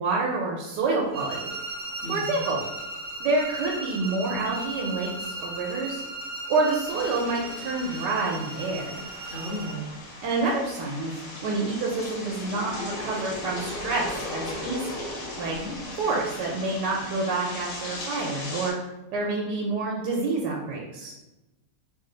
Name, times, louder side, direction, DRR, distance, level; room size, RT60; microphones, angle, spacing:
voice 1, 0.0-1.5 2.1-2.6 3.2-6.0 6.5-9.0 10.2-11.1 11.4-15.1 15.4-15.6 16.0-18.7 19.1-21.1, right 3 dB, 80° right, -2 dB, 1.2 m, -28 dB
sound 1, 1.1-9.9, right 2 dB, 55° right, 0.6 m, -36 dB
sound 2, 6.9-18.7, left 2 dB, 75° left, 1.4 m, -38 dB
voice 2, 9.3-9.9 15.5-16.1, equal, 40° left, -4 dB, 0.9 m, -35 dB
3.2 x 2.4 x 3.8 m, 1.0 s
omnidirectional pair, 1.8 m